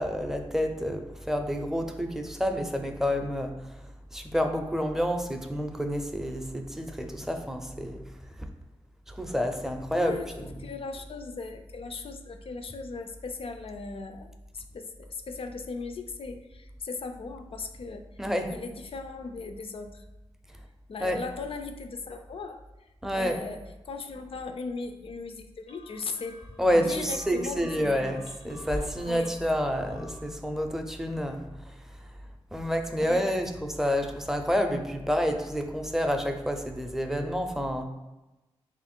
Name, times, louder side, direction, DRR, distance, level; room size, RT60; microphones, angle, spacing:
voice 1, 0.0-3.5 4.1-8.0 9.1-10.4 18.2-18.5 21.0-21.2 23.0-23.4 26.6-31.8 32.5-37.8, equal, 5° right, 5 dB, 0.5 m, -29 dB
voice 2, 10.0-18.1 18.5-20.0 20.9-26.4 26.7-28.2 29.1-29.4 33.0-33.2, left 4 dB, 60° left, 7 dB, 0.4 m, -38 dB
sound 1, 25.7-30.4, left 1 dB, 80° left, 0.8 m, -43 dB
3.4 x 2.5 x 4.3 m, 1.1 s
cardioid pair, 50°, 11 cm